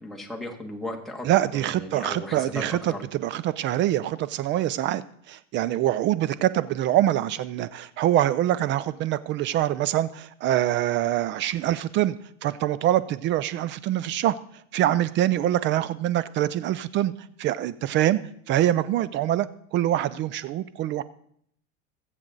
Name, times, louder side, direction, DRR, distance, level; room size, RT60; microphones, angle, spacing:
voice 1, 0.0-1.3 1.5-3.0, left 1 dB, ahead, 0 dB, 1.9 m, -36 dB
voice 2, 1.2-5.0 5.3-12.2 12.4-14.4 14.7-17.1 17.4-18.2 18.5-21.0, right 13 dB, 30° right, 16 dB, 0.4 m, -24 dB
21.0 x 7.6 x 3.9 m, 0.67 s
supercardioid pair, 125°, 40 cm